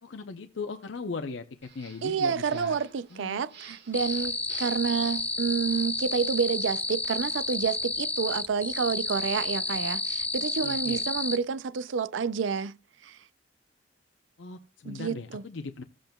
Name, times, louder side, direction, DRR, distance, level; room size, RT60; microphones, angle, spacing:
voice 1, 0.0-2.8 3.1-3.4 10.6-11.0 14.4-15.8, left 4 dB, 80° left, 0.7 m, -38 dB
sound 1, 1.6-6.5, right 6 dB, 60° right, 1.4 m, -51 dB
voice 2, 2.0-12.8 13.0-13.2 14.9-15.4, right 6 dB, 85° right, 0.4 m, -29 dB
sound 2, 3.9-11.4, left 3 dB, 10° left, 0.3 m, -31 dB
15.0 x 7.8 x 2.3 m
head